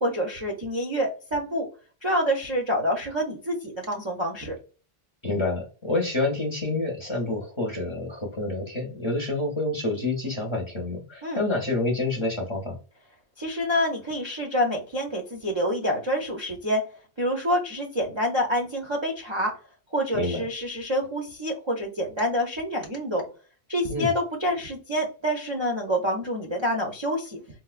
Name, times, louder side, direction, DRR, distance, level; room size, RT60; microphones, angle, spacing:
voice 1, 0.0-1.7 2.0-4.5 11.2-11.4 13.4-16.8 17.2-19.5 19.9-23.2 23.7-27.4, equal, 40° right, -1 dB, 0.4 m, -27 dB
voice 2, 5.2-12.8 20.1-20.4 23.9-24.1, left 2 dB, 35° left, 0 dB, 0.6 m, -28 dB
4.2 x 2.0 x 2.3 m, 0.39 s
omnidirectional pair, 1.1 m